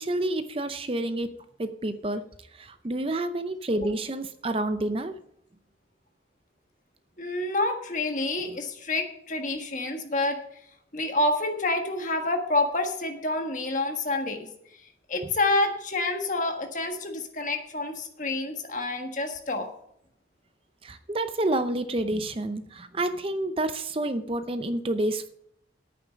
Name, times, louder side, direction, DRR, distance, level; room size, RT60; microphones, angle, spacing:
voice 1, 0.0-1.3 1.6-2.2 2.5-5.1 8.5-8.6 20.8-25.3, right 1 dB, 30° right, 10 dB, 0.6 m, -29 dB
voice 2, 7.2-10.4 10.9-14.5 15.1-19.7, left 2 dB, 45° left, 4 dB, 1.5 m, -28 dB
10.5 x 9.0 x 5.2 m, 0.70 s
head